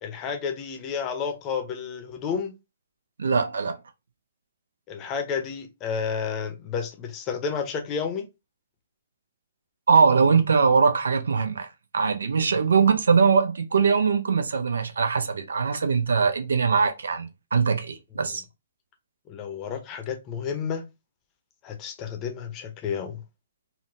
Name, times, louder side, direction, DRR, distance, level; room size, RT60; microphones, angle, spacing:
voice 1, 0.0-2.5 4.9-8.3 18.1-18.4 19.3-20.9 21.6-23.2, left 6 dB, 25° left, 0.7 m, -31 dB
voice 2, 3.2-3.8 9.9-11.7 11.9-18.4, right 5 dB, 65° right, 0.5 m, -21 dB
3.7 x 2.2 x 2.5 m
figure-of-eight pair, 125°, 0 cm